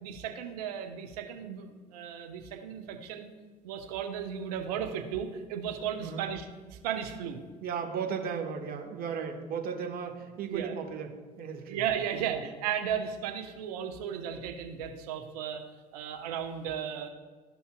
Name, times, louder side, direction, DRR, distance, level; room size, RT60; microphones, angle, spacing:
voice 1, 0.0-3.3 3.6-7.4 10.5-10.7 11.7-15.6 15.9-17.1, right 8 dB, 70° right, 5 dB, 0.9 m, -35 dB
voice 2, 7.6-11.8 12.1-12.4, right 6 dB, 45° right, 3 dB, 1.2 m, -36 dB
13.0 x 5.5 x 2.3 m, 1.4 s
hypercardioid pair, 65°, 21 cm